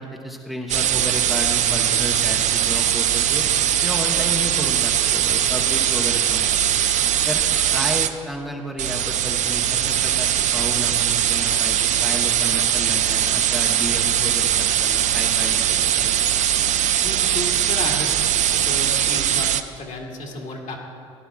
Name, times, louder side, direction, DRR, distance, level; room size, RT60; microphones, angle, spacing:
voice 1, 0.0-3.4 3.8-6.6 7.3-7.4 7.7-15.6 16.0-16.2, equal, ahead, 0 dB, 1.1 m, -32 dB
sound 1, 0.7-8.1 8.8-19.6, right 10 dB, 45° right, 0.6 m, -21 dB
voice 2, 1.7-2.1 17.0-20.8, left 2 dB, 45° left, 0 dB, 2.0 m, -33 dB
16.5 x 11.5 x 2.4 m, 2.4 s
hypercardioid pair, 65°, 17 cm